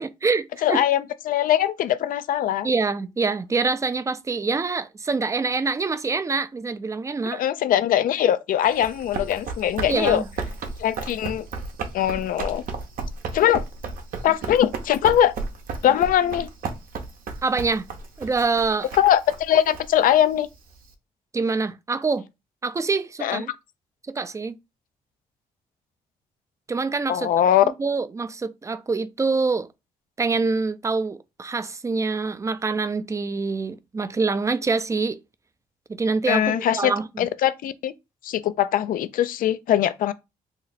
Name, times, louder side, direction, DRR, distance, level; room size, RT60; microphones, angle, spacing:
voice 1, 0.0-0.8 2.6-7.4 9.9-10.3 17.4-17.9 18.2-18.9 21.3-22.3 22.6-23.5 24.1-24.6 26.7-27.3 27.6-29.7 30.2-35.2 35.9-37.3, right 4 dB, 20° right, 0.4 m, -25 dB
voice 2, 0.6-2.7 7.3-10.2 10.8-11.5 11.9-12.6 13.3-13.6 14.2-15.3 15.8-16.5 18.9-20.5 23.2-23.4 27.1-27.6 36.3-36.9 37.2-37.9 38.2-40.1, left 11 dB, 65° left, 0.4 m, -21 dB
Run, 8.6-20.9, right 4 dB, 70° right, 0.7 m, -34 dB
2.8 x 2.0 x 3.9 m
supercardioid pair, 55°, 15 cm